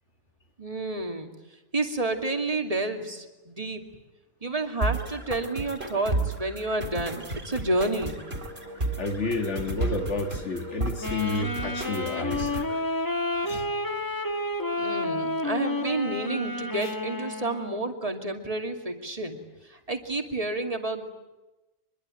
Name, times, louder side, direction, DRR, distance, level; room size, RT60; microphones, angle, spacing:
voice 1, 0.6-1.3 1.7-3.8 4.4-8.2 14.8-19.4 19.7-21.1, right 2 dB, 25° right, 2.7 m, -30 dB
sound 1, 4.8-12.8, right 2 dB, 50° right, 4.2 m, -33 dB
sound 2, 6.8-13.8, left 1 dB, 80° right, 5.1 m, -46 dB
voice 2, 9.0-12.6 13.4-13.7 16.8-16.9, left 2 dB, 60° left, 2.3 m, -31 dB
Wind instrument woodwind instrument, 11.0-17.9, left 2 dB, 15° left, 1.4 m, -30 dB
25.0 x 23.0 x 9.1 m
omnidirectional pair, 1.4 m